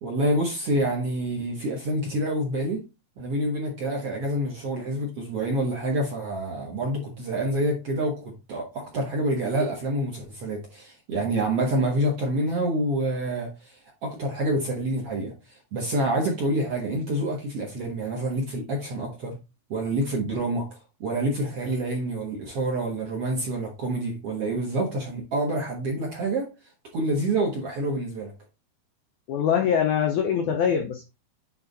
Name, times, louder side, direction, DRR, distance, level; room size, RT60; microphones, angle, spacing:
voice 1, 0.0-2.8 3.2-19.4 19.7-20.7 21.0-26.5 26.9-28.3, right 1 dB, 60° right, 1.7 m, -27 dB
voice 2, 29.3-31.0, left 8 dB, 85° left, 1.7 m, -23 dB
8.6 x 3.4 x 4.0 m
omnidirectional pair, 4.5 m